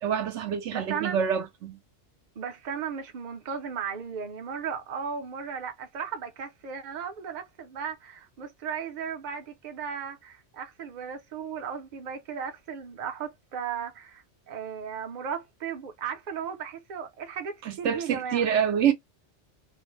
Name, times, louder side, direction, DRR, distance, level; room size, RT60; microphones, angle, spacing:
voice 1, 0.0-1.8 17.7-18.9, right 8 dB, 75° right, 1.0 m, -26 dB
voice 2, 0.7-1.2 2.4-18.5, right 7 dB, 45° right, 0.7 m, -36 dB
2.6 x 2.0 x 3.0 m
omnidirectional pair, 1.2 m